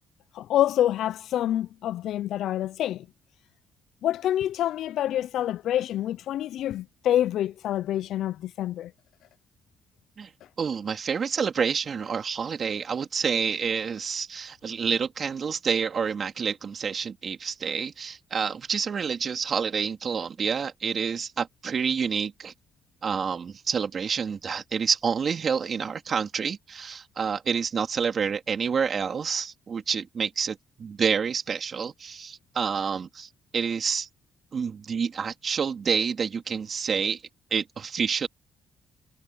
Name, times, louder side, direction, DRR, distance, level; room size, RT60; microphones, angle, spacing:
voice 1, 0.3-3.1 4.0-8.9, left 12 dB, 80° left, 0.4 m, -27 dB
voice 2, 10.6-22.5 23.0-34.1 34.5-37.2 37.5-38.3, right 6 dB, 50° right, 3.3 m, -28 dB
cardioid pair, 90°, 0 cm